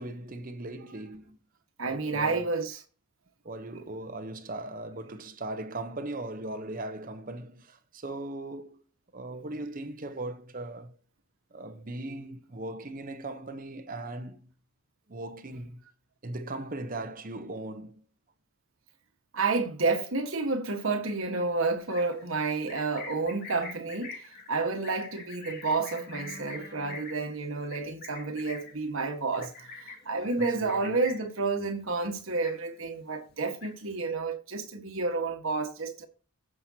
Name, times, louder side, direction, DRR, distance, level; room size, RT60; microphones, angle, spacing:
voice 1, 0.0-1.4 1.8-2.5 3.4-8.8 9.1-11.0 11.5-14.4 15.1-15.8 16.2-18.0 29.4-29.5 30.4-31.0, right 2 dB, 40° right, 0.8 m, -39 dB
voice 2, 1.8-2.8 3.7-3.8 19.3-36.1, right 3 dB, 65° right, 1.5 m, -30 dB
Livestock farm animals working animals, 21.8-31.4 31.7-32.0 32.3-33.0 33.3-34.0, left 4 dB, 45° left, 2.4 m, -45 dB
15.5 x 5.9 x 2.8 m
head